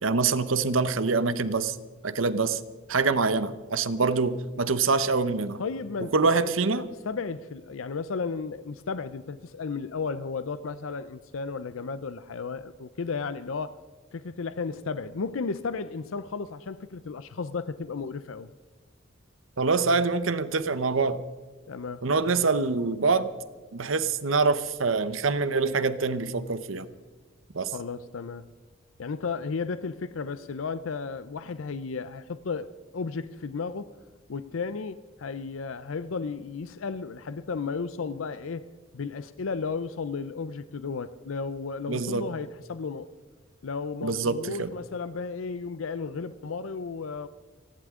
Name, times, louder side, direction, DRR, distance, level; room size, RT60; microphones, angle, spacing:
voice 1, 0.0-1.8 2.0-2.6 2.9-5.6 6.1-6.9 19.6-21.2 22.0-23.3 23.7-26.9 27.5-27.7 41.9-42.3 44.0-44.7, right 4 dB, 80° right, 0.9 m, -25 dB
voice 2, 5.6-13.8 14.1-18.5 21.7-22.1 27.7-28.5 29.0-33.9 34.3-38.7 38.9-43.1 43.6-47.3, left 4 dB, 90° left, 0.5 m, -34 dB
30.0 x 11.5 x 3.7 m
head